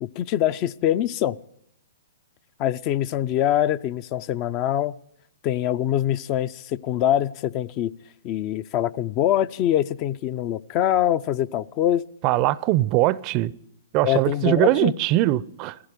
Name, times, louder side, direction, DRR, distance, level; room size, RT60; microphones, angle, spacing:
voice 1, 0.0-1.4 2.6-5.0 5.4-7.9 8.2-12.0 14.0-14.9, left 11 dB, 35° left, 0.5 m, -24 dB
voice 2, 12.2-13.5 13.9-15.8, right 16 dB, 35° right, 0.5 m, -21 dB
16.0 x 15.0 x 5.1 m
hypercardioid pair, 120°, 0 cm